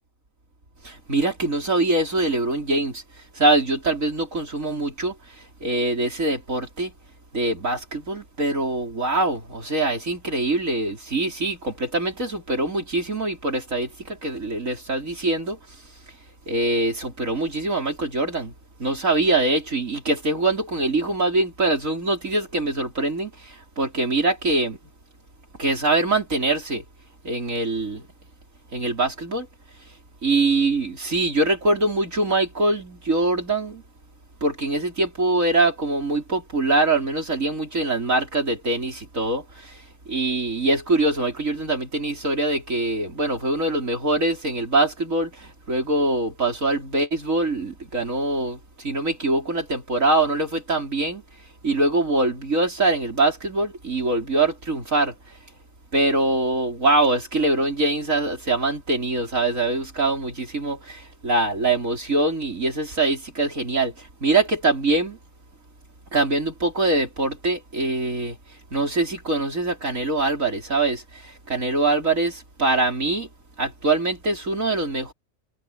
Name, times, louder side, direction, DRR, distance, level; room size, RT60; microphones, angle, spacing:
voice 1, 0.8-3.0 3.4-6.9 7.3-15.6 16.5-18.5 18.8-24.8 25.6-26.8 27.2-28.1 28.7-29.5 30.2-33.8 34.4-39.8 40.1-51.2 51.6-55.1 55.9-65.2 66.1-68.4 68.7-73.3 73.6-75.1, right 2 dB, 65° right, 5.3 m, -23 dB
omnidirectional pair, 1.5 m